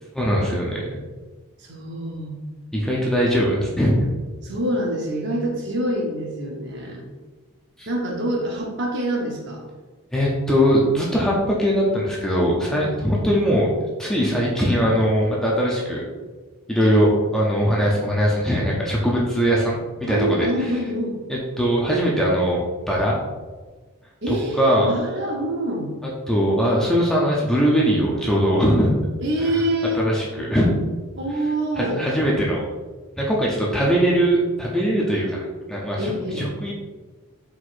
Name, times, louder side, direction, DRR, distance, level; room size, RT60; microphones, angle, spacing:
voice 1, 0.1-1.0 2.7-4.1 7.8-7.9 10.1-16.0 16.7-20.7 21.3-22.6 22.9-23.2 24.3-24.9 26.3-28.9 29.4-29.6 29.9-30.7 31.7-32.6 33.2-36.7, equal, ahead, -5 dB, 0.5 m, -21 dB
voice 2, 1.6-2.4 4.4-7.0 7.9-9.6 12.7-13.1 20.1-21.2 24.2-26.0 29.2-30.0 31.1-32.0 36.0-36.5, right 1 dB, 50° right, -1 dB, 0.8 m, -26 dB
4.4 x 4.1 x 2.5 m, 1.3 s
head